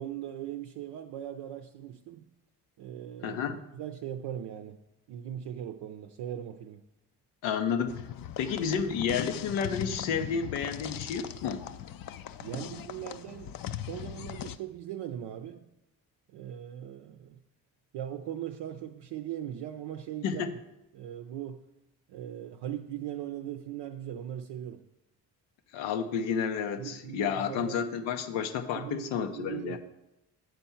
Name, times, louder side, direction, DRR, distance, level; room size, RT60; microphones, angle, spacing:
voice 1, 0.0-2.3 2.8-3.4 3.7-4.8 5.1-6.8 12.4-15.7 16.3-17.4 17.9-20.5 20.9-21.6 22.1-24.8 26.8-27.8 28.7-29.8, right 11 dB, 70° right, 0.6 m, -39 dB
voice 2, 3.2-3.6 7.4-8.0 8.4-11.7 20.2-20.5 25.7-29.8, left 6 dB, 85° left, 0.7 m, -31 dB
sound 1, 7.9-14.6, left 11 dB, 55° left, 0.5 m, -40 dB
8.1 x 4.4 x 5.6 m
supercardioid pair, 45°, 43 cm